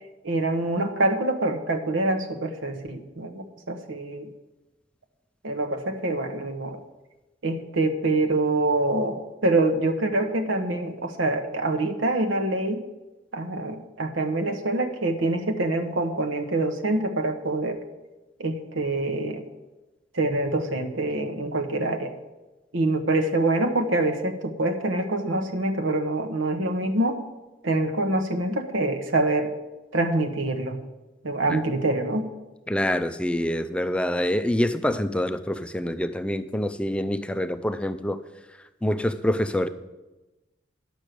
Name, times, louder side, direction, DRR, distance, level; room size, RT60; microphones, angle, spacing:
voice 1, 0.2-4.3 5.4-6.8 7.4-12.8 13.3-17.8 18.4-19.4 20.1-22.1 22.7-27.2 27.6-29.5 29.9-30.8 31.2-32.3, right 2 dB, 80° right, 6 dB, 1.1 m, -25 dB
voice 2, 32.7-38.2 38.8-39.7, left 1 dB, 5° left, 10 dB, 0.4 m, -26 dB
10.5 x 6.3 x 6.6 m, 1.1 s
head